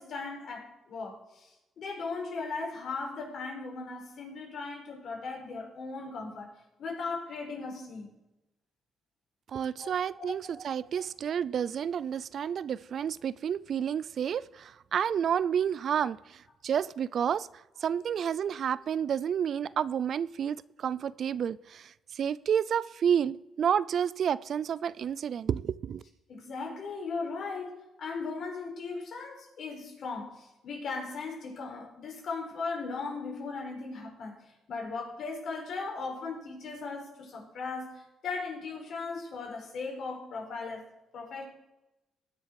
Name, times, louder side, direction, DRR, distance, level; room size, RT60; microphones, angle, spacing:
voice 1, 0.0-6.5 6.8-8.1 9.8-9.9 10.2-10.6 26.3-34.4 34.7-40.9 41.1-41.4, left 4 dB, 60° left, 4.8 m, -38 dB
voice 2, 9.5-17.5 17.8-26.0, right 8 dB, 60° right, 0.4 m, -30 dB
20.0 x 6.9 x 4.7 m
cardioid pair, 80°, 0 cm